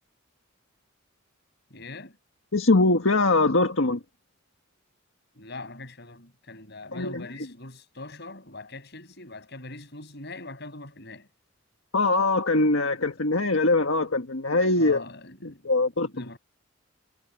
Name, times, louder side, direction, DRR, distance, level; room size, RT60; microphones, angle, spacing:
voice 1, 1.7-2.2 5.3-11.3 12.9-13.0 14.7-16.4, left 2 dB, 55° left, 7.5 m, -42 dB
voice 2, 2.5-4.0 6.9-7.2 11.9-15.0 15.6-16.2, left 2 dB, 75° left, 1.6 m, -22 dB
head